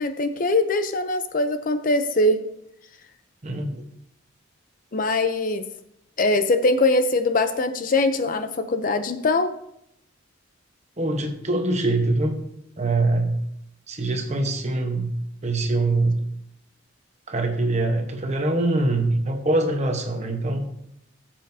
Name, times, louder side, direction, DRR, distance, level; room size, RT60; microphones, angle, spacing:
voice 1, 0.0-2.4 4.9-5.6 6.2-9.5, left 2 dB, 40° left, 10 dB, 0.5 m, -22 dB
voice 2, 11.0-12.4 12.8-13.4 13.9-15.1 15.4-16.2 17.3-20.6, right 2 dB, 35° right, 4 dB, 1.0 m, -23 dB
14.5 x 7.6 x 2.7 m, 0.77 s
head